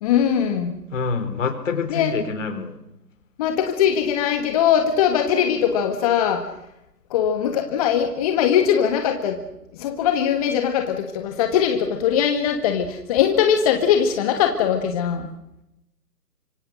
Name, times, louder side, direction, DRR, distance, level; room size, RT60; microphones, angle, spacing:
voice 1, 0.0-0.8 1.9-2.1 3.4-6.5 7.1-9.4 9.7-15.3, left 8 dB, 20° left, 6 dB, 1.6 m, -21 dB
voice 2, 0.9-2.7, left 5 dB, 50° left, 10 dB, 4.2 m, -26 dB
25.5 x 25.5 x 6.4 m, 0.89 s
figure-of-eight pair, 145°, 49 cm